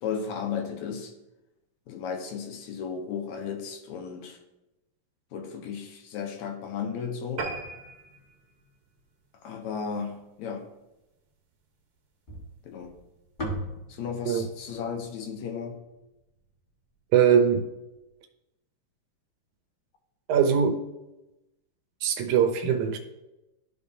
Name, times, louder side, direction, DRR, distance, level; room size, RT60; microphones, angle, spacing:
voice 1, 0.0-1.1 1.9-4.4 5.3-7.5 9.4-10.7 12.6-13.0 13.9-15.8, left 6 dB, 75° left, 3 dB, 2.1 m, -34 dB
sound 1, 7.4-10.1 10.6-10.8 11.2-11.3 11.6-11.7 12.0-12.1, right 3 dB, 60° right, 1.7 m, -39 dB
sound 2, 12.3-16.6, equal, 50° left, 0.6 m, -39 dB
voice 2, 17.1-17.7 20.3-20.9 22.0-23.0, right 7 dB, 85° right, 6 dB, 2.2 m, -22 dB
12.5 x 5.1 x 2.7 m, 0.98 s
omnidirectional pair, 3.3 m